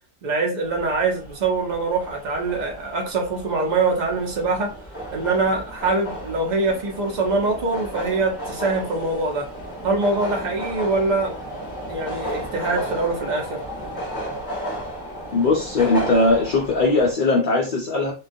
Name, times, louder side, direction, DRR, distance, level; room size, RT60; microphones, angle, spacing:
voice 1, 0.2-4.7 5.1-9.4 9.8-11.4 11.9-13.6, right 3 dB, 45° right, 0.6 m, -23 dB
sound 1, 0.6-17.1, equal, 20° left, 0.8 m, -34 dB
voice 2, 15.3-18.1, left 3 dB, 65° left, 0.5 m, -19 dB
2.3 x 2.2 x 2.6 m
omnidirectional pair, 1.4 m